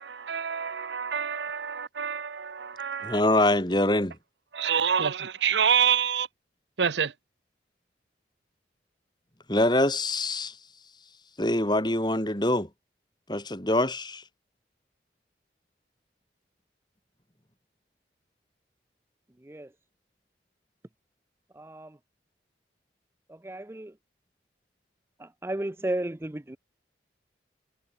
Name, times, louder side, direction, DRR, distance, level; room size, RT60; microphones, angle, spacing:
voice 1, 0.0-3.2 4.5-6.3 6.8-7.1, right 7 dB, 80° right, 0.8 m, -27 dB
voice 2, 3.0-4.2 9.5-10.6 11.4-12.7 13.3-14.2, left 1 dB, 25° left, 3.6 m, -24 dB
voice 3, 21.6-22.0 23.3-23.9 25.2-26.6, right 1 dB, 15° right, 0.5 m, -34 dB
head